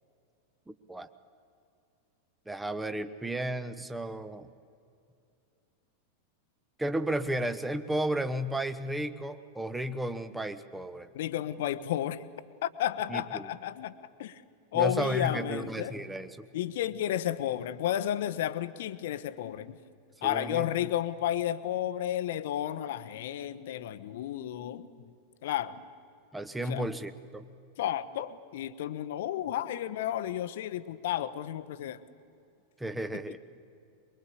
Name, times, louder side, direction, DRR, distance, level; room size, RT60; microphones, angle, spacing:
voice 1, 0.7-1.1 2.5-4.5 6.8-11.1 13.1-13.5 14.7-16.5 20.2-20.9 26.3-27.5 32.8-33.4, right 1 dB, 5° right, 11 dB, 1.1 m, -33 dB
voice 2, 11.1-12.2 12.6-13.9 14.2-14.4 14.7-16.1 16.5-19.8 20.2-24.9 25.4-25.8 26.7-26.9 27.8-32.0, left 11 dB, 55° left, 13 dB, 1.0 m, -32 dB
23.5 x 22.5 x 8.6 m, 2.6 s
figure-of-eight pair, 90°, 0 cm